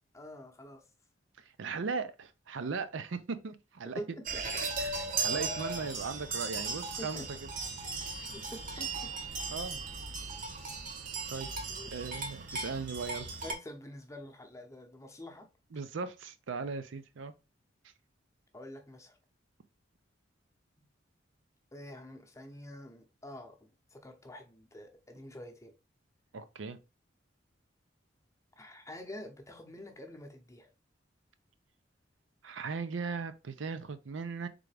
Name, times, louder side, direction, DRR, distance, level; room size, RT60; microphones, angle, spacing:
voice 1, 0.1-0.9 4.0-4.3 6.6-7.3 8.3-9.1 9.9-10.0 11.7-11.9 13.4-15.5 18.5-19.2 21.7-25.7 28.6-30.7, left 1 dB, 15° left, 0.8 m, -47 dB
voice 2, 1.6-4.0 4.8-7.2 8.0-8.3 9.5-9.8 11.3-11.5 11.9-13.3 15.7-17.3 26.3-26.8 32.4-34.5, right 4 dB, 80° right, 0.5 m, -38 dB
sound 1, 4.3-13.5, right 4 dB, 45° right, 0.9 m, -37 dB
3.7 x 3.4 x 3.3 m
head